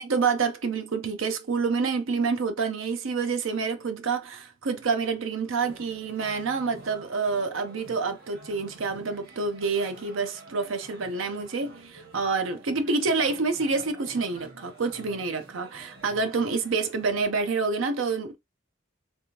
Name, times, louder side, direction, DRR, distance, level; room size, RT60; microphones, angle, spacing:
voice 1, 0.0-18.4, right 4 dB, 80° right, 0.7 m, -28 dB
sound 1, 5.6-17.2, right 1 dB, 50° right, 1.3 m, -49 dB
3.4 x 3.4 x 2.8 m
head